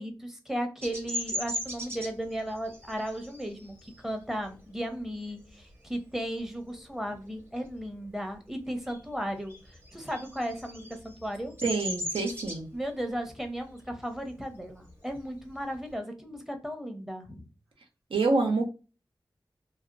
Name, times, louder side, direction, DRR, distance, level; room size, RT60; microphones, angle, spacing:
voice 1, 0.0-11.5 12.7-17.4, equal, 5° right, 5 dB, 0.6 m, -35 dB
Bird vocalization bird call bird song, 0.8-6.0 6.4-6.8 7.1-8.3 8.6-15.9, equal, 25° right, 0.9 m, -39 dB
voice 2, 11.6-12.7 18.1-18.7, right 3 dB, 90° right, 2 dB, 0.6 m, -26 dB
2.7 x 2.1 x 2.4 m, 0.34 s
wide cardioid pair, 70°, 9 cm